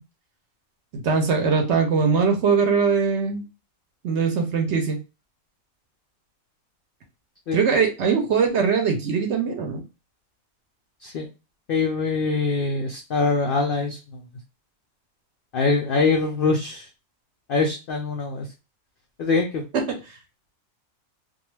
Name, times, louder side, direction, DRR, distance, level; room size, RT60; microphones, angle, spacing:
voice 1, 0.9-3.4 4.0-5.0 7.5-9.8 19.9-20.0, right 5 dB, 65° right, 4 dB, 0.8 m, -21 dB
voice 2, 11.7-14.2 15.5-16.9 17.5-18.5 19.2-19.6, left 4 dB, 80° left, 2 dB, 0.5 m, -23 dB
2.3 x 2.3 x 3.0 m, 0.30 s
omnidirectional pair, 1.5 m